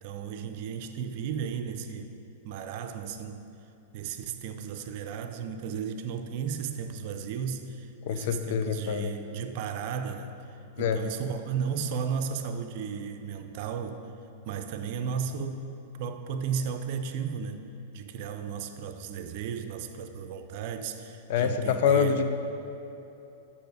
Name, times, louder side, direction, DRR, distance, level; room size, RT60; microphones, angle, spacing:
voice 1, 0.0-2.1 2.4-3.5 3.9-14.0 14.4-15.7 16.0-17.7 17.9-22.2, right 7 dB, 50° right, 8 dB, 0.6 m, -34 dB
voice 2, 8.0-9.1 10.8-11.0 21.3-22.3, left 7 dB, 55° left, 8 dB, 0.6 m, -25 dB
10.0 x 4.8 x 4.8 m, 2.9 s
figure-of-eight pair, 100°, 0 cm